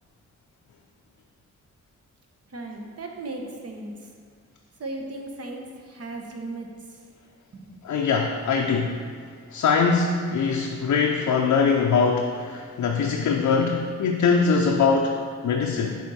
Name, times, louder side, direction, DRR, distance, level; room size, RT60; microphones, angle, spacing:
voice 1, 2.5-4.1 4.8-7.0 7.5-7.8, right 2 dB, 55° right, 2 dB, 1.0 m, -36 dB
voice 2, 7.8-9.0 9.5-16.0, left 5 dB, 75° left, 1 dB, 0.5 m, -22 dB
6.4 x 4.2 x 4.1 m, 2.1 s
cardioid pair, 55°, 30 cm